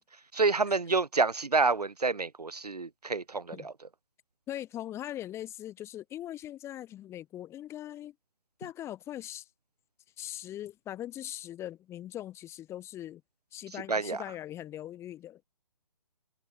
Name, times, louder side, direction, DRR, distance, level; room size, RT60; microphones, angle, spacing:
voice 1, 0.4-3.7 13.9-14.2, right 4 dB, 85° right, 0.8 m, -28 dB
voice 2, 4.5-8.1 8.6-9.5 10.2-13.2 13.5-15.4, left 12 dB, 15° left, 4.5 m, -41 dB
figure-of-eight pair, 140°, 20 cm